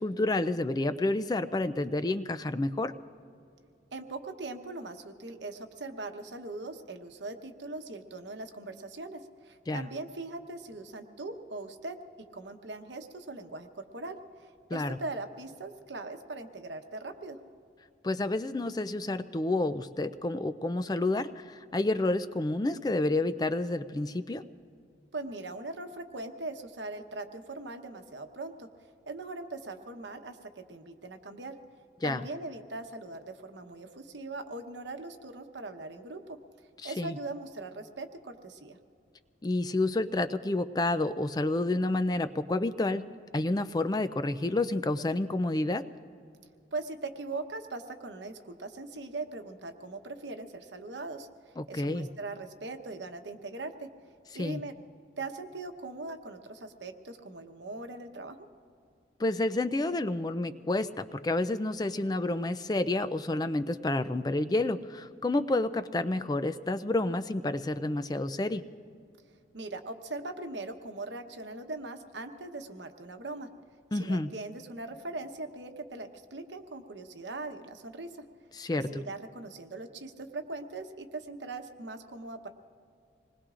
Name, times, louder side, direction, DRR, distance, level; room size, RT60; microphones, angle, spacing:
voice 1, 0.0-2.9 9.7-9.9 14.7-15.0 18.0-24.4 32.0-32.2 36.8-37.2 39.4-43.0 43.3-45.8 51.6-52.1 54.3-54.6 59.2-68.6 73.9-74.3 78.6-79.0, left 2 dB, 20° left, 11 dB, 0.4 m, -29 dB
voice 2, 3.9-12.0 12.3-14.2 14.7-17.4 25.1-28.7 29.1-31.5 32.0-36.4 36.8-38.8 46.7-51.3 51.7-53.9 54.3-54.7 55.2-58.5 69.5-73.5 73.9-78.1 78.7-82.5, right 2 dB, 75° right, 6 dB, 1.1 m, -40 dB
26.5 x 20.5 x 2.5 m, 2.4 s
head